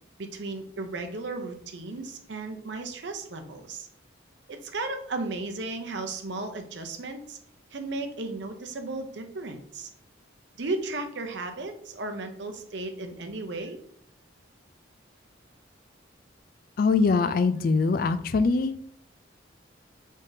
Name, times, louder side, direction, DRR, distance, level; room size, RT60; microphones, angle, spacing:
voice 1, 0.2-3.9 4.5-7.4 7.7-9.9 10.6-13.8, right 3 dB, 65° right, 5 dB, 0.7 m, -35 dB
voice 2, 16.8-18.8, left 4 dB, 45° left, 10 dB, 0.3 m, -23 dB
5.6 x 3.6 x 2.7 m, 0.64 s
head